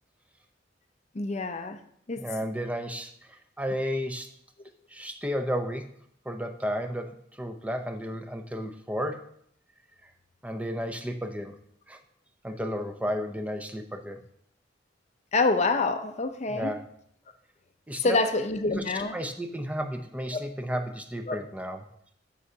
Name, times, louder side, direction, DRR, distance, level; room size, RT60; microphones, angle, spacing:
voice 1, 1.1-1.8 2.1-2.2 15.3-16.7 18.0-19.2 20.3-20.4 21.3-21.4, left 3 dB, 35° left, 0.6 m, -26 dB
voice 2, 2.2-4.3 4.9-5.9 6.3-7.1 7.4-9.2 10.4-11.5 11.9-12.0 12.4-14.2 16.5-16.8 17.9-18.2 18.7-21.9, equal, 10° right, 0.6 m, -33 dB
13.0 x 5.7 x 2.8 m
head